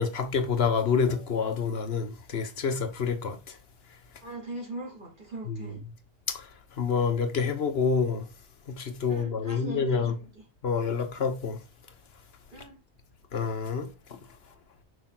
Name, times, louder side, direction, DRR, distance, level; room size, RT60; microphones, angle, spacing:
voice 1, 0.0-3.4 5.5-5.7 6.8-8.2 8.8-10.1 10.6-11.6 13.3-13.9, left 5 dB, 60° left, 1.3 m, -27 dB
voice 2, 4.2-5.8 9.1-10.4 12.5-12.8, right 2 dB, 45° right, 3.2 m, -40 dB
6.8 x 5.5 x 3.9 m
omnidirectional pair, 1.2 m